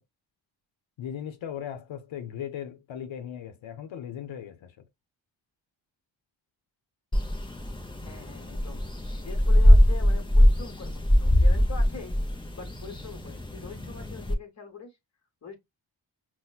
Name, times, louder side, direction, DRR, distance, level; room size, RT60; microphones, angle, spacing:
voice 1, 1.0-4.7, left 9 dB, 90° left, 0.7 m, -37 dB
sound 1, 7.1-14.3, equal, 10° left, 0.6 m, -22 dB
voice 2, 8.0-8.8 9.1-12.1 12.5-14.9 15.4-15.6, left 5 dB, 35° left, 1.0 m, -43 dB
5.6 x 2.1 x 2.3 m
wide cardioid pair, 165°, 45 cm